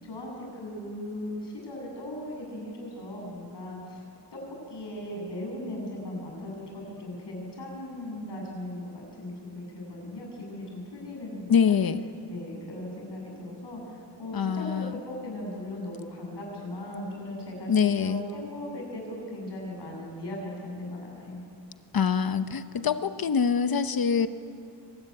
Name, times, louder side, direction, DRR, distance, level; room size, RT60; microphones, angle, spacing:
voice 1, 0.0-4.0 4.3-4.4 4.7-11.8 12.3-17.7 18.0-21.4, left 1 dB, 70° left, -1 dB, 7.7 m, -38 dB
voice 2, 11.5-12.0 14.3-14.9 17.7-18.2 21.9-24.3, left 6 dB, 55° left, 11 dB, 0.9 m, -24 dB
23.5 x 21.0 x 10.0 m, 2.6 s
wide cardioid pair, 160°, 42 cm